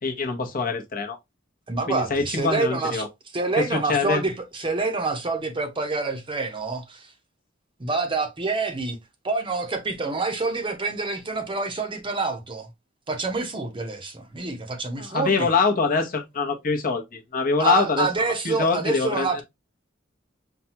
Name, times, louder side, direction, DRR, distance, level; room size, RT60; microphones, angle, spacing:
voice 1, 0.0-1.2 1.9-3.1 3.6-4.2 15.0-18.1 18.4-19.4, left 4 dB, 45° left, 0.9 m, -24 dB
voice 2, 1.7-3.1 3.3-7.1 7.8-9.0 9.2-12.7 13.1-15.5 17.6-19.4, right 3 dB, 25° right, 0.7 m, -27 dB
5.6 x 2.2 x 2.8 m
head